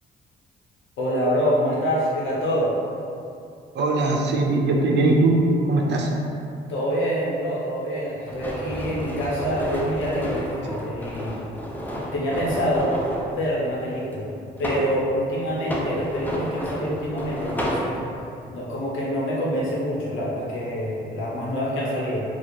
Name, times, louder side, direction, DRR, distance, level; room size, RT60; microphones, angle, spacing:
voice 1, 1.0-2.7 6.7-11.4 12.1-12.9 13.3-14.3 14.6-18.0 18.5-22.2, equal, 80° left, -6 dB, 1.0 m, -26 dB
voice 2, 3.7-5.4 5.6-6.1, right 2 dB, 60° right, 0 dB, 0.6 m, -20 dB
sound 1, 8.3-13.3 14.1-15.0 15.6-17.9, equal, 10° left, 0.5 m, -31 dB
3.0 x 2.4 x 4.1 m, 2.5 s
cardioid pair, 90°, 20 cm